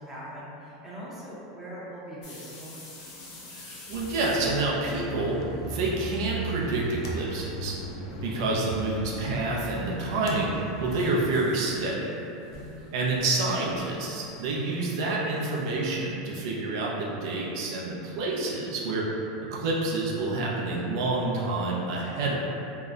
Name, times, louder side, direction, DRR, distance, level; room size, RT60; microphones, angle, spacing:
voice 1, 0.0-2.7 12.5-13.0, equal, 15° right, -9 dB, 0.6 m, -41 dB
sound 1, 2.2-6.0 6.3-7.0 7.3-7.4 8.1-8.4 9.4-14.9, left 2 dB, 60° left, 0.8 m, -49 dB
voice 2, 3.5-7.8 8.2-12.1 12.9-19.1 19.5-22.3, right 2 dB, 70° right, -4 dB, 0.5 m, -28 dB
sound 2, 3.9-11.4, right 1 dB, 90° left, 0.4 m, -37 dB
2.7 x 2.1 x 2.4 m, 2.8 s
supercardioid pair, 120°, 2 cm